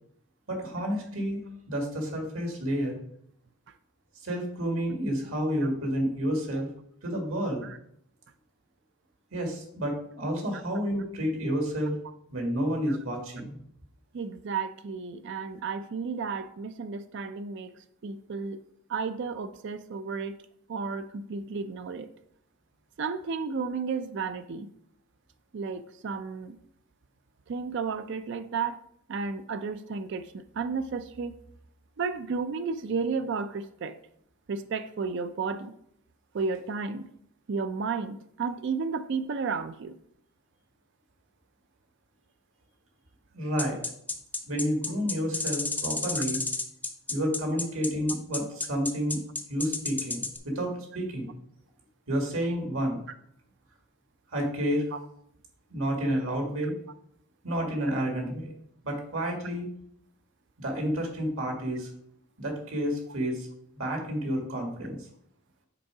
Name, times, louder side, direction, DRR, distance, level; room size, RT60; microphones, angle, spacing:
voice 1, 0.5-1.4 1.7-3.0 4.2-6.7 7.0-7.6 9.3-12.0 12.3-13.6 43.3-43.8 44.5-46.4 47.1-49.2 49.5-51.3 52.1-53.0 54.3-54.8 55.7-56.7 57.4-58.5 58.8-59.7 60.6-61.9 62.4-63.5 63.8-65.0, equal, 75° right, 1 dB, 1.8 m, -30 dB
voice 2, 14.1-17.7 18.0-18.6 18.9-20.4 20.7-22.1 23.0-24.7 25.5-26.6 27.5-28.8 29.1-30.3 30.6-31.3 32.0-33.9 34.5-35.7 36.3-37.1 37.5-39.9 54.9-55.0, right 5 dB, 55° right, 11 dB, 0.4 m, -32 dB
sound 1, 43.6-50.4, left 3 dB, 10° left, 0.5 m, -31 dB
6.7 x 3.7 x 4.8 m, 0.70 s
head